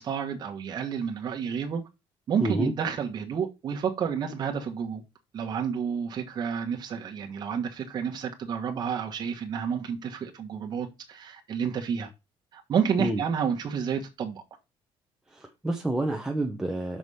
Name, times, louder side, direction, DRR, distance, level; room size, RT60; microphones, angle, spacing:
voice 1, 0.0-1.8 2.3-5.0 5.3-12.1 12.5-14.4, right 7 dB, 40° right, 1.4 m, -30 dB
voice 2, 2.4-2.7 13.0-13.2 15.3-17.0, right 1 dB, 5° right, 1.0 m, -28 dB
6.2 x 4.9 x 5.5 m
cardioid pair, 150°, 10 cm